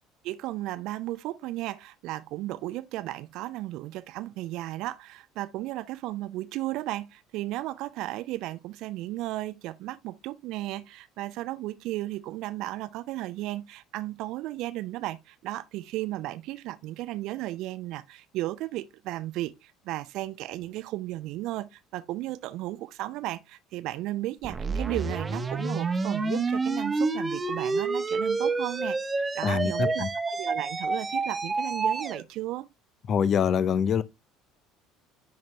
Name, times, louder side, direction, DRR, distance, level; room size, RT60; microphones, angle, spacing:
voice 1, 0.2-32.7, right 16 dB, 55° right, 0.6 m, -35 dB
sound 1, 24.4-32.2, right 3 dB, 20° right, 0.9 m, -28 dB
voice 2, 29.4-30.1 33.1-34.0, left 7 dB, 40° left, 0.5 m, -25 dB
10.5 x 4.0 x 3.2 m
figure-of-eight pair, 60°, 0 cm